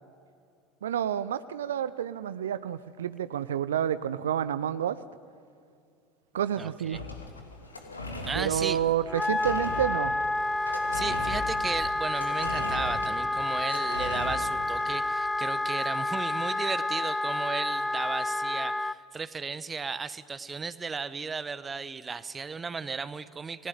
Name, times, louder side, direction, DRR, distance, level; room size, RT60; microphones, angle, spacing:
voice 1, 0.8-5.0 6.3-7.0 8.3-10.1, right 9 dB, 70° right, 14 dB, 0.7 m, -29 dB
voice 2, 6.6-7.0 8.2-8.8 10.9-23.7, right 5 dB, 20° right, 15 dB, 1.1 m, -35 dB
sound 1, 6.9-14.9, left 2 dB, 85° left, 2.8 m, -39 dB
Wind instrument woodwind instrument, 9.1-19.0, left 2 dB, 10° left, 0.6 m, -29 dB
29.5 x 20.5 x 9.6 m, 2.4 s
figure-of-eight pair, 70°, 0 cm